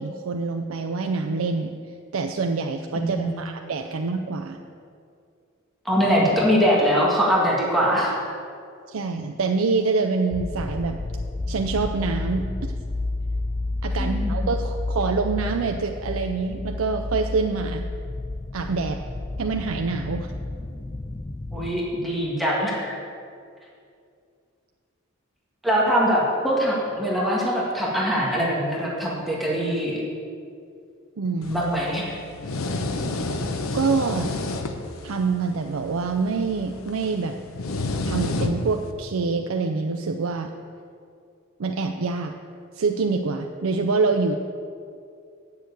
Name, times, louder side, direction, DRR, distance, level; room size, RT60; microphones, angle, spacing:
voice 1, 0.0-1.7 2.1-4.6 8.9-11.0 11.5-12.7 13.8-17.8 18.5-19.0 19.4-20.3 31.2-31.6 33.7-34.3 35.0-37.4 38.0-40.5 41.6-42.3 42.7-44.4, right 4 dB, 75° right, 5 dB, 0.5 m, -26 dB
voice 2, 3.0-3.3 5.9-8.2 14.0-14.5 21.5-23.0 25.6-30.0 31.5-32.1, equal, ahead, -5 dB, 1.8 m, -22 dB
sound 1, 10.3-21.7, left 2 dB, 20° left, 0.4 m, -30 dB
sound 2, 31.4-38.9, left 2 dB, 85° left, 0.8 m, -30 dB
7.9 x 6.7 x 8.3 m, 2.4 s
head